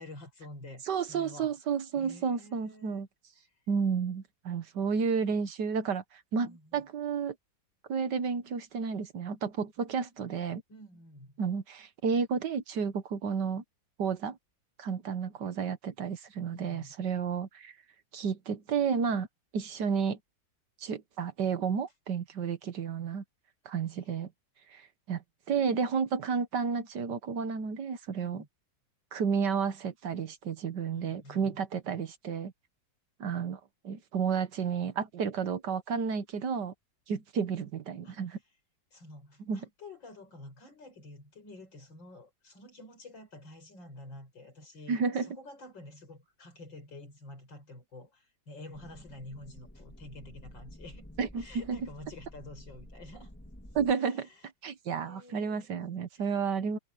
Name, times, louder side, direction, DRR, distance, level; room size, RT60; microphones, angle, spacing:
voice 1, 0.0-1.5 2.0-3.1 6.4-6.8 10.7-11.3 16.4-16.9 24.0-24.1 28.2-28.5 30.9-31.6 38.0-38.2 38.9-51.1 51.4-53.3 53.9-54.4 55.0-55.7 56.2-56.4, left 1 dB, 75° left, 6.7 m, -49 dB
voice 2, 0.9-3.1 3.7-6.0 6.3-7.3 7.9-10.6 11.4-13.6 14.0-14.4 14.8-17.7 18.1-19.3 19.5-20.2 20.8-23.2 23.6-24.3 24.7-25.2 25.5-28.4 29.1-32.5 33.2-36.7 37.1-38.4 39.5-39.6 44.9-45.3 51.2-51.8 53.7-54.3 54.6-56.8, right 6 dB, 65° right, 1.7 m, -31 dB
sound 1, 48.7-53.9, left 1 dB, 5° left, 2.7 m, -50 dB
omnidirectional pair, 2.1 m